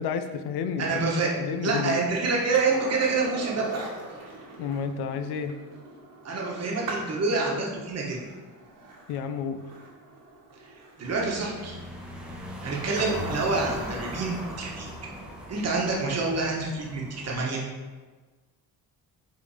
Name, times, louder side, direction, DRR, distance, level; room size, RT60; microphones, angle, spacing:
voice 1, 0.0-1.0 1.4-2.0 4.6-5.5 9.1-9.6, left 6 dB, 80° left, 9 dB, 0.6 m, -30 dB
voice 2, 0.8-1.3 1.6-3.9 6.2-8.2 11.0-11.8 12.6-14.9 15.5-17.6, right 3 dB, 40° right, -2 dB, 1.4 m, -27 dB
Skateboard, 2.5-13.4 16.0-16.1, right 2 dB, 60° right, 1.6 m, -42 dB
sound 1, 11.0-17.3, equal, ahead, 0.9 m, -38 dB
6.0 x 3.6 x 4.9 m, 1.3 s
cardioid pair, 120°, 38 cm